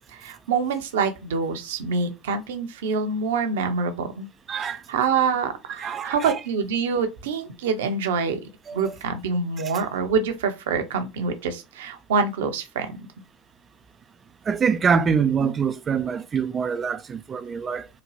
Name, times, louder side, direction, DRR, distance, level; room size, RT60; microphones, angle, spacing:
voice 1, 0.1-4.3 4.6-8.4 8.7-13.1, right 5 dB, 70° right, 0.7 m, -26 dB
voice 2, 4.5-4.8 5.8-6.4 8.7-9.0 14.5-17.9, right 6 dB, 25° right, 0.4 m, -25 dB
3.8 x 2.2 x 3.1 m
figure-of-eight pair, 80°, 0 cm